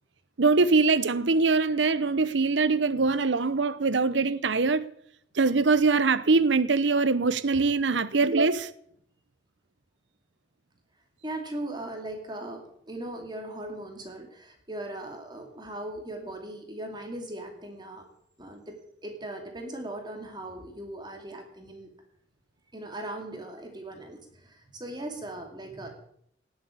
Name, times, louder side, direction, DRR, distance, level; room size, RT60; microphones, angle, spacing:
voice 1, 0.4-4.9 5.3-8.7, right 4 dB, 75° right, 0.8 m, -23 dB
voice 2, 11.2-18.1 18.4-21.9 22.7-25.9, right 1 dB, 25° right, 2.6 m, -39 dB
19.0 x 7.9 x 8.6 m
head